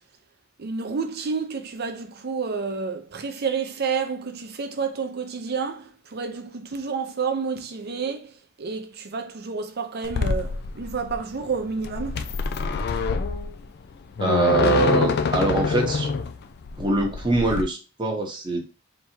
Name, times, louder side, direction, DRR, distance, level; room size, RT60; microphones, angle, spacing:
voice 1, 0.6-12.3, right 5 dB, 50° right, 0.6 m, -30 dB
sound 1, 10.0-17.6, left 5 dB, 50° left, 0.4 m, -26 dB
voice 2, 14.2-16.1 16.8-18.7, right 3 dB, 25° right, 0.9 m, -23 dB
3.4 x 2.8 x 4.4 m
head